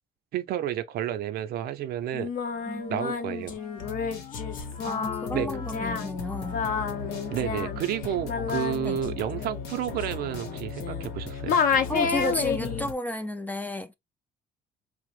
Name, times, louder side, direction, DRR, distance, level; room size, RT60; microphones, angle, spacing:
voice 1, 0.3-2.3 2.9-3.6 5.3-5.5 7.3-11.6, right 10 dB, 65° right, 0.5 m, -31 dB
Singing, 2.1-11.2 11.5-12.9, left 6 dB, 55° left, 0.7 m, -30 dB
Wind instrument woodwind instrument, 2.4-8.1, left 7 dB, 35° left, 0.9 m, -47 dB
voice 2, 2.7-3.2 4.8-6.6 8.8-9.0 11.9-13.9, left 1 dB, 10° left, 0.3 m, -33 dB
sound 1, 3.8-12.9, left 5 dB, 75° left, 0.9 m, -37 dB
2.9 x 2.0 x 3.1 m
cardioid pair, 110°, 17 cm